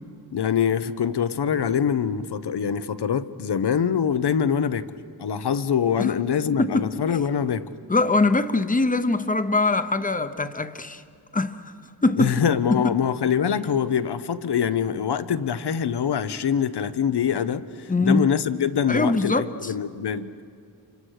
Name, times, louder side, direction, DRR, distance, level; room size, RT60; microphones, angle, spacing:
voice 1, 0.3-4.9 5.2-7.7 12.2-20.3, left 7 dB, 70° left, 0.9 m, -24 dB
voice 2, 6.5-6.9 7.9-11.0 11.3-11.6 12.0-12.3 12.7-12.8 17.9-18.2 18.9-19.7, left 2 dB, 20° left, 0.9 m, -22 dB
29.5 x 26.0 x 6.5 m
wide cardioid pair, 105°, 41 cm